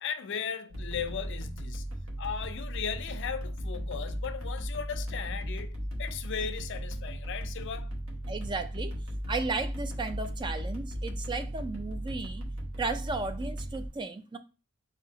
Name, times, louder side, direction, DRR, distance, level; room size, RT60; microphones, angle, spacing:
voice 1, 0.0-1.8 2.2-7.9, left 7 dB, 55° left, 0.4 m, -37 dB
sound 1, 0.7-13.9, equal, 65° right, 1.1 m, -36 dB
voice 2, 8.3-9.0 9.3-12.4 12.8-14.4, right 3 dB, 20° right, 0.3 m, -34 dB
4.3 x 2.7 x 3.8 m
head